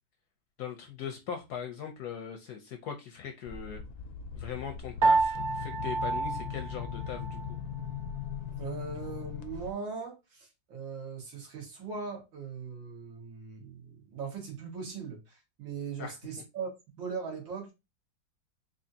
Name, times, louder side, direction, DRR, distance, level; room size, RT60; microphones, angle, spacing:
voice 1, 0.6-3.8 4.3-7.6 16.0-16.2, left 8 dB, 70° left, 1.0 m, -40 dB
sound 1, 3.4-9.7, left 8 dB, 90° left, 1.4 m, -39 dB
Piano, 5.0-7.5, right 3 dB, 60° right, 1.2 m, -29 dB
voice 2, 8.6-16.7 17.0-17.7, right 5 dB, 75° right, 2.2 m, -40 dB
4.6 x 2.6 x 2.7 m
omnidirectional pair, 2.1 m